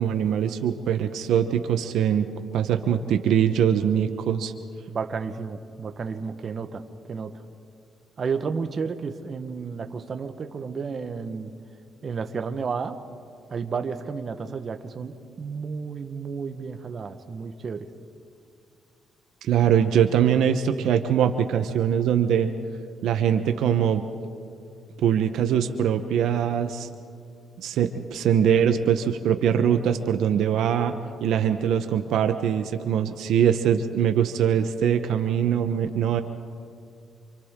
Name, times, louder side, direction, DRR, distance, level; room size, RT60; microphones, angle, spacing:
voice 1, 0.0-2.3 2.5-4.5 19.4-22.5 23.0-24.0 25.0-26.9 27.6-30.9 31.2-36.2, right 9 dB, 80° right, 8 dB, 1.0 m, -22 dB
voice 2, 4.9-6.8 7.1-7.4 8.2-11.5 12.0-13.0 13.5-17.9, right 5 dB, 45° right, 7 dB, 1.2 m, -32 dB
28.5 x 26.5 x 3.8 m, 2.3 s
cardioid pair, 90°, 0 cm